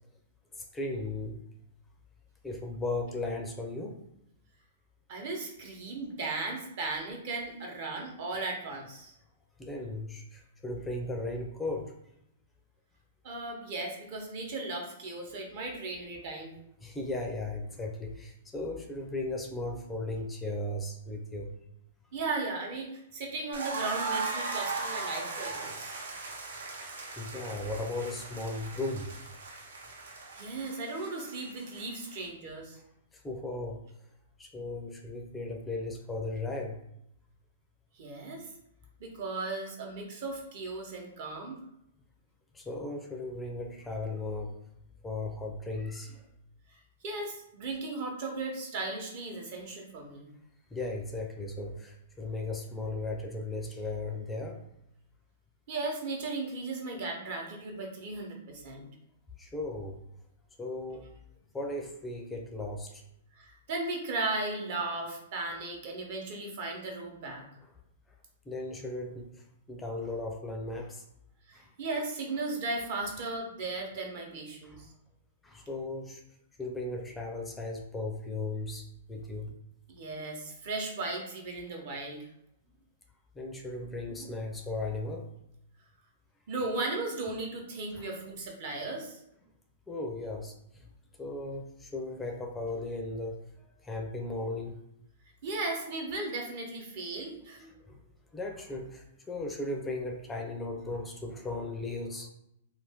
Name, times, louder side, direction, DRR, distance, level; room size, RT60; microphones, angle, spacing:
voice 1, 0.5-1.4 2.4-4.0 9.6-12.0 16.8-21.5 27.2-29.2 33.1-33.8 34.4-36.8 42.5-44.6 45.0-46.3 50.7-54.6 59.4-60.0 60.6-61.1 61.5-63.0 68.5-71.0 71.5-71.7 74.6-74.8 75.4-76.2 76.6-79.5 83.4-85.3 88.0-88.1 89.9-90.9 91.2-94.8 97.7-98.0 98.3-102.3, left 2 dB, 10° left, 2 dB, 0.4 m, -36 dB
voice 2, 5.1-9.1 13.2-16.5 22.1-26.0 30.4-32.8 37.9-38.5 39.0-41.6 46.7-50.3 55.7-58.9 63.3-67.4 71.5-74.9 79.9-82.3 86.5-89.2 95.4-97.7, right 3 dB, 55° right, 1 dB, 0.9 m, -36 dB
sound 1, 23.5-32.3, right 4 dB, 80° right, 0.6 m, -38 dB
2.5 x 2.2 x 3.4 m, 0.78 s
hypercardioid pair, 125°, 0 cm